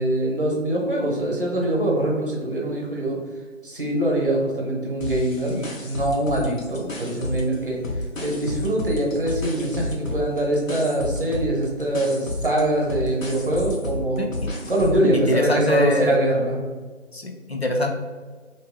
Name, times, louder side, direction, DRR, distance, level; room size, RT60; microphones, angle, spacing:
voice 1, 0.0-3.2 3.6-7.8 8.2-14.2 14.7-16.6, right 1 dB, 45° right, -1 dB, 0.9 m, -23 dB
sound 1, 5.0-7.6 7.8-15.1, left 1 dB, 90° left, 0.9 m, -31 dB
voice 2, 14.2-14.5 15.1-16.2 17.1-17.9, left 1 dB, 55° left, 2 dB, 0.4 m, -23 dB
3.0 x 2.8 x 3.5 m, 1.4 s
figure-of-eight pair, 170°, 38 cm